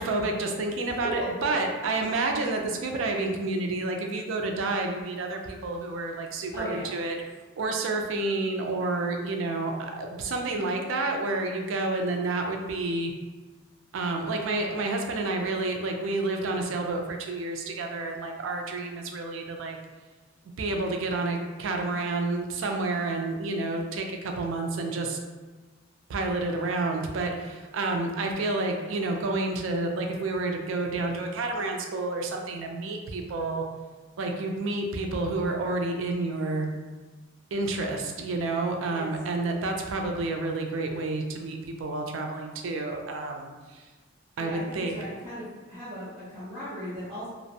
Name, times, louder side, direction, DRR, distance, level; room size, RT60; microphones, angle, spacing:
voice 1, 0.0-7.2 7.6-13.1 13.9-19.8 20.6-25.2 26.1-33.7 34.2-36.8 37.5-43.8 44.4-45.0, right 2 dB, 75° right, 3 dB, 0.4 m, -29 dB
voice 2, 6.5-6.9 10.5-10.8 38.9-39.1 44.4-47.3, equal, 25° right, -14 dB, 0.7 m, -38 dB
2.4 x 2.0 x 2.7 m, 1.3 s
head